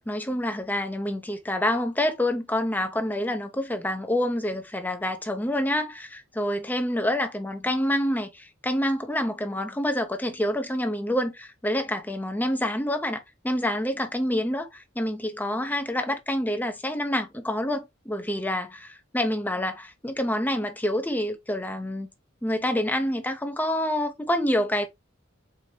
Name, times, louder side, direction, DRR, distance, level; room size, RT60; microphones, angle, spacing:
voice 1, 0.1-22.1 22.4-24.9, left 1 dB, 10° left, 0.7 m, -27 dB
4.4 x 2.8 x 3.1 m
head